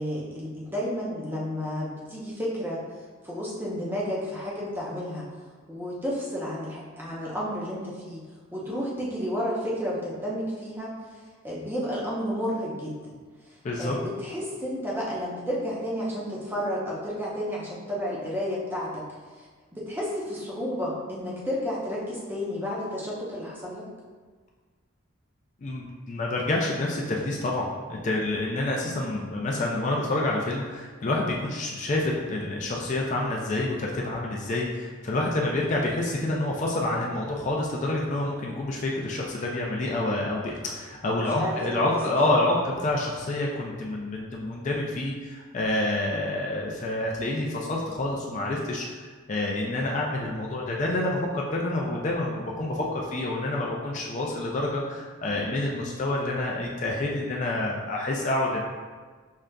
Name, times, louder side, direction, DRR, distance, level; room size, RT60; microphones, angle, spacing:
voice 1, 0.0-2.8 3.2-5.3 5.7-8.2 8.5-10.9 11.4-13.2 13.8-19.0 19.4-19.5 19.7-23.9 41.2-41.8 42.2-42.4, equal, 10° right, -6 dB, 0.6 m, -31 dB
voice 2, 13.6-14.0 25.6-49.0 49.3-58.6, left 2 dB, 35° left, -2 dB, 0.3 m, -28 dB
6.3 x 2.4 x 2.2 m, 1.5 s
head